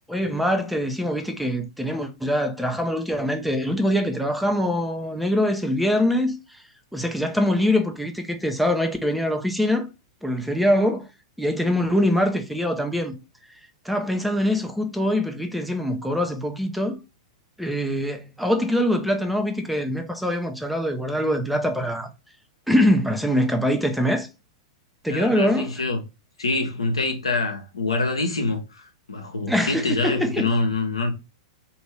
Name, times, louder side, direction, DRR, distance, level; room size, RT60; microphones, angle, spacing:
voice 1, 0.1-6.6 6.9-9.9 10.2-11.0 11.4-13.2 13.5-13.6 13.8-17.0 17.6-22.1 22.7-24.3 25.0-25.7 29.5-30.5, left 1 dB, ahead, 0.6 m, -23 dB
voice 2, 25.1-26.0 26.4-31.1, left 3 dB, 80° left, 0.8 m, -25 dB
2.7 x 2.7 x 3.3 m
figure-of-eight pair, 100°, 3 cm